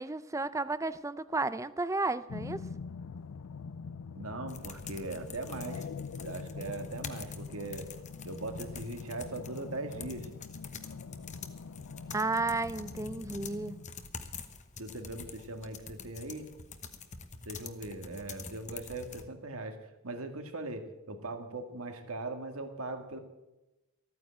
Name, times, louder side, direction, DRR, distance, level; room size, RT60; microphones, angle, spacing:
voice 1, 0.0-2.6 12.1-13.8, right 3 dB, 15° right, 15 dB, 0.5 m, -33 dB
sound 1, 2.3-13.9, left 5 dB, 85° left, 0.5 m, -44 dB
voice 2, 4.1-5.9 6.2-7.9 8.2-10.3 14.8-16.5 17.5-23.2, right 2 dB, 85° right, 6 dB, 1.9 m, -40 dB
sound 2, 4.5-19.2, left 5 dB, 35° left, 1.1 m, -47 dB
14.5 x 9.4 x 8.8 m, 1.0 s
head